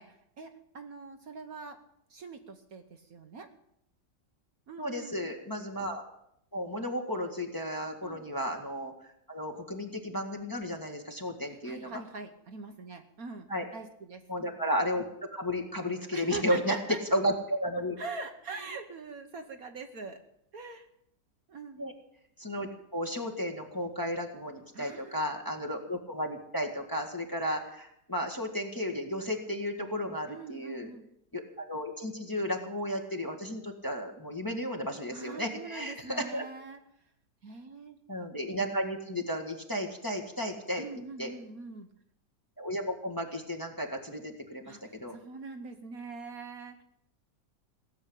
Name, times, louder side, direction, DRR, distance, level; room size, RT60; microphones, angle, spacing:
voice 1, 0.0-1.8 2.1-3.5 4.7-5.3 8.0-8.3 11.6-14.2 16.1-17.0 18.0-20.2 20.5-20.9 21.5-21.8 24.7-25.3 30.3-31.1 35.1-36.8 37.4-38.0 40.8-41.9 44.6-46.8, right 4 dB, 55° right, 6 dB, 1.5 m, -43 dB
voice 2, 4.8-6.0 6.5-8.9 9.3-11.9 13.5-13.7 14.3-15.0 15.3-16.8 17.1-18.0 21.8-21.9 22.4-30.9 31.3-36.4 38.1-40.8 41.2-41.3 42.6-45.1, equal, 10° left, 2 dB, 1.6 m, -33 dB
17.5 x 7.5 x 10.0 m, 0.75 s
omnidirectional pair, 1.9 m